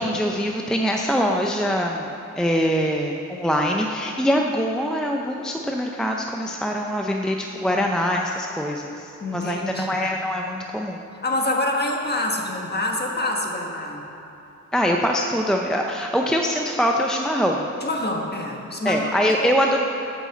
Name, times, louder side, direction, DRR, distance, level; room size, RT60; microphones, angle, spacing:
voice 1, 0.0-2.1 2.4-11.0 14.7-17.7 18.8-19.8, equal, ahead, 1 dB, 0.5 m, -23 dB
voice 2, 9.2-10.1 11.2-14.0 17.8-19.5, left 1 dB, 30° left, 0 dB, 1.4 m, -26 dB
10.0 x 6.5 x 7.7 m, 2.8 s
wide cardioid pair, 105°, 31 cm